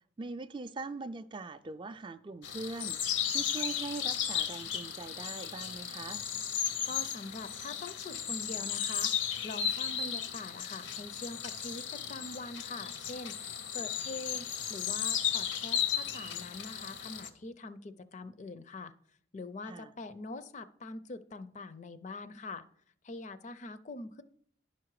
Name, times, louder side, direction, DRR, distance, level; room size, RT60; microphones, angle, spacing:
voice 1, 0.2-6.2 19.7-19.9, right 3 dB, 25° right, 0.3 m, -42 dB
sound 1, 2.4-17.3, left 8 dB, 80° left, 0.8 m, -35 dB
voice 2, 6.9-9.1 9.4-18.9 19.3-22.7 23.0-24.2, left 2 dB, 40° left, 0.5 m, -44 dB
10.5 x 5.8 x 4.7 m
head